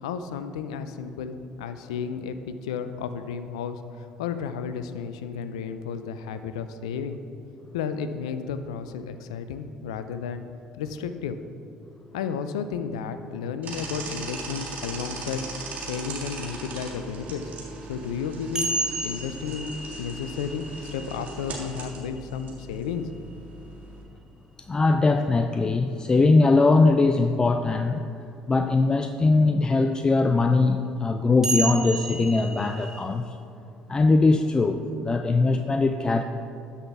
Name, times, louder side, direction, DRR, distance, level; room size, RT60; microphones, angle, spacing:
voice 1, 0.0-7.2 7.7-10.4 10.8-11.4 12.1-15.4 15.9-17.4 17.9-18.7 19.0-19.7 20.0-23.2, left 6 dB, 80° left, 10 dB, 0.4 m, -32 dB
sound 1, 13.6-24.0, right 3 dB, 55° right, 1.8 m, -39 dB
sound 2, 18.6-22.8 24.6-24.7 27.7-27.8 31.4-33.0, right 2 dB, 20° right, 1.3 m, -32 dB
voice 2, 24.7-28.0 28.5-33.3 33.9-36.2, left 3 dB, 25° left, 7 dB, 0.4 m, -21 dB
12.5 x 5.7 x 3.5 m, 2.6 s
hypercardioid pair, 60°, 3 cm